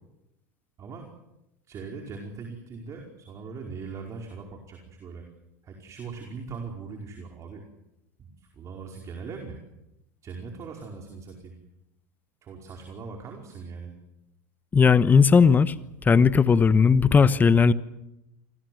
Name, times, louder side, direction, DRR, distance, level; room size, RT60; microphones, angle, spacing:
voice 1, 0.8-1.1 1.7-5.3 5.6-7.6 8.2-9.6 10.2-11.5 12.4-13.9, right 5 dB, 35° right, 2 dB, 5.0 m, -40 dB
voice 2, 14.7-15.7 16.0-17.7, left 5 dB, 20° left, 15 dB, 1.1 m, -17 dB
28.0 x 20.0 x 7.9 m, 0.88 s
supercardioid pair, 115°, 9 cm